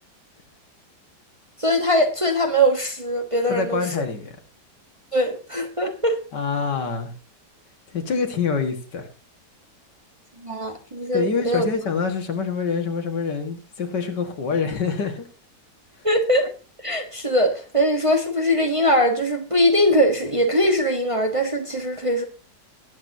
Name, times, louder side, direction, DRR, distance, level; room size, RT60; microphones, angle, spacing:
voice 1, 1.6-3.9 5.1-6.2 10.4-11.6 16.0-16.5 16.8-22.2, equal, 20° right, 3 dB, 1.2 m, -21 dB
voice 2, 3.5-4.3 6.3-7.1 7.9-9.1 11.1-15.2, left 5 dB, 80° left, 5 dB, 2.5 m, -26 dB
20.5 x 8.6 x 2.8 m, 0.34 s
omnidirectional pair, 1.8 m